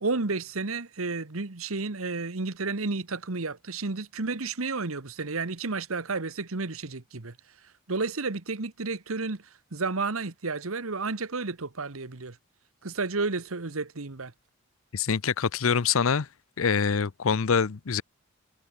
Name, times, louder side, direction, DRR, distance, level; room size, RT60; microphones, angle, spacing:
voice 1, 0.0-7.3 7.9-9.4 9.7-12.4 12.8-14.3, right 3 dB, 80° right, 1.4 m, -31 dB
voice 2, 14.9-16.3 16.6-18.0, left 6 dB, 70° left, 0.7 m, -25 dB
head